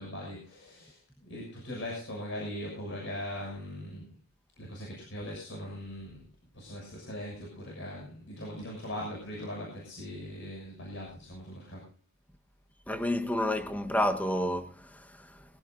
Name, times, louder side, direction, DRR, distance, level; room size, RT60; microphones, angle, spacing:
voice 1, 0.0-4.2 4.6-6.2 6.5-11.9, left 1 dB, 55° left, 6.7 m, -40 dB
voice 2, 12.9-15.4, left 1 dB, 5° left, 1.2 m, -30 dB
21.5 x 17.0 x 2.6 m
head